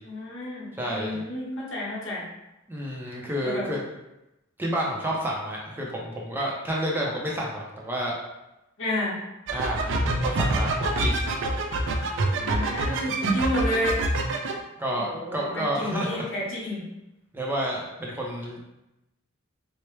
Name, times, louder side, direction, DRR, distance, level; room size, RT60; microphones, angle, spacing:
voice 1, 0.1-2.2 3.4-3.7 8.8-9.2 12.4-14.0 14.9-16.9, left 1 dB, 65° left, -5 dB, 1.2 m, -31 dB
voice 2, 0.8-1.2 2.7-3.8 4.6-8.2 9.5-9.9 10.2-11.3 12.7-12.9 14.8-16.2 17.3-18.6, equal, 10° right, -4 dB, 0.6 m, -30 dB
sound 1, 9.5-14.5, right 2 dB, 60° right, 0.4 m, -26 dB
4.4 x 2.1 x 3.2 m, 0.93 s
head